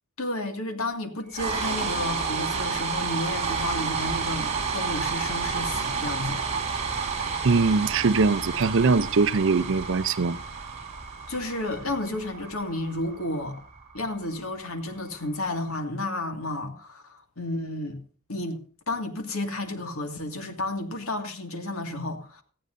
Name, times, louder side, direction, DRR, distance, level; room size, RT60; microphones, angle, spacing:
voice 1, 0.2-6.4 11.3-13.6 13.9-18.0 18.3-18.6 18.9-22.4, left 2 dB, 90° left, 2.1 m, -32 dB
sound 1, 1.3-15.4, right 5 dB, 30° right, 4.3 m, -31 dB
voice 2, 7.4-10.4, right 4 dB, 65° right, 0.6 m, -22 dB
17.5 x 14.0 x 2.6 m
head